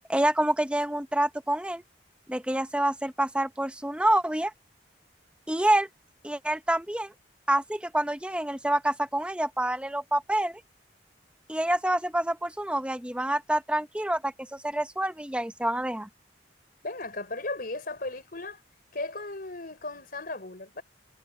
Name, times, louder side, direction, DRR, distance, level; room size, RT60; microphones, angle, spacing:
voice 1, 0.1-1.8 2.3-4.5 5.5-5.9 6.2-7.1 7.5-10.6 11.5-16.1, right 1 dB, 5° right, 1.1 m, -27 dB
voice 2, 16.8-18.6 18.9-20.8, left 2 dB, 55° left, 4.7 m, -36 dB
head